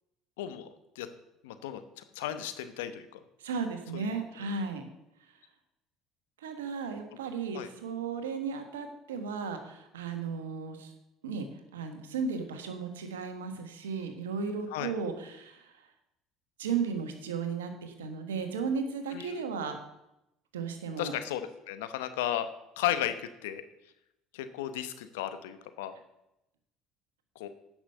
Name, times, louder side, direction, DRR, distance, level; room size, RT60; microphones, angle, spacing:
voice 1, 0.4-0.7 0.9-1.1 1.4-3.2 3.9-4.1 7.5-7.7 14.7-14.9 19.1-19.4 21.0-22.5 22.8-23.6 24.3-25.9 27.3-27.5, left 11 dB, 80° left, 11 dB, 0.8 m, -34 dB
voice 2, 3.4-4.8 6.4-10.9 11.2-15.9 16.6-19.8 20.5-21.2, right 5 dB, 90° right, 7 dB, 1.3 m, -35 dB
10.0 x 6.1 x 6.7 m, 0.87 s
hypercardioid pair, 70°, 0 cm